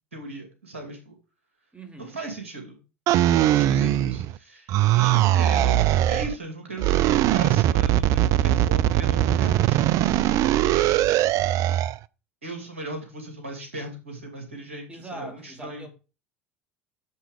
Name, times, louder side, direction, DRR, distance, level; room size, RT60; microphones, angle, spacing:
voice 1, 0.1-1.1 2.0-2.8 3.1-10.8 12.4-15.9, right 2 dB, 85° right, 2.7 m, -38 dB
voice 2, 1.7-2.2 14.9-15.9, right 2 dB, 15° right, 2.8 m, -41 dB
sound 1, 3.1-4.4 4.7-6.3 6.8-12.0, right 13 dB, 55° right, 0.4 m, -21 dB
7.1 x 5.4 x 5.0 m
hypercardioid pair, 70°, 7 cm